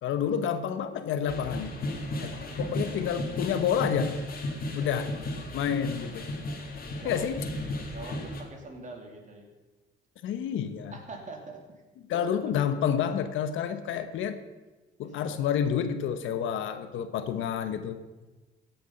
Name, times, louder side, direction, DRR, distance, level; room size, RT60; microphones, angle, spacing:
voice 1, 0.0-1.7 2.2-2.3 2.6-4.2 4.7-5.1 5.5-6.3 7.0-7.4 10.2-10.9 12.1-14.4 15.0-18.0, left 8 dB, 85° left, 10 dB, 1.0 m, -29 dB
sound 1, 1.3-8.4, left 1 dB, 45° left, 2.3 m, -35 dB
voice 2, 4.6-4.9 6.5-6.7 7.0-7.2 7.9-9.5 10.9-11.6 12.1-12.3 15.0-15.5, right 3 dB, 40° right, 2 dB, 2.8 m, -44 dB
15.5 x 6.9 x 5.7 m, 1.2 s
cardioid pair, 90°, 20 cm